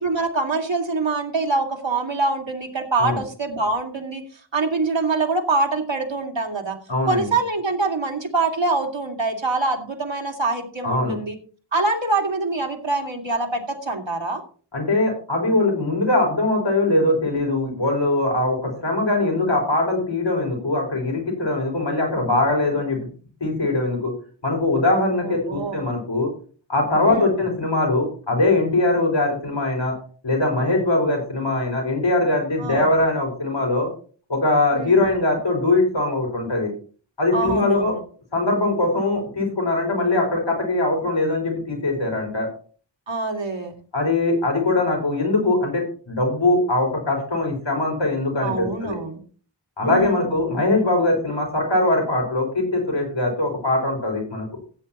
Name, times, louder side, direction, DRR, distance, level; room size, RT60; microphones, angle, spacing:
voice 1, 0.0-4.2 4.5-6.8 7.0-11.4 11.7-14.4 25.2-25.8 27.0-27.3 32.6-32.9 34.7-35.0 37.3-38.0 43.1-43.8 48.4-49.2 49.8-50.2, right 3 dB, 80° right, 2 dB, 2.3 m, -24 dB
voice 2, 6.9-7.3 10.8-11.2 14.7-23.0 23.4-24.1 24.4-26.3 26.7-29.9 30.2-33.9 34.3-36.7 37.2-37.9 38.3-42.5 43.9-49.0 49.8-54.6, left 2 dB, 75° left, 1 dB, 4.9 m, -21 dB
15.5 x 8.6 x 3.0 m, 0.41 s
wide cardioid pair, 45°, 45 cm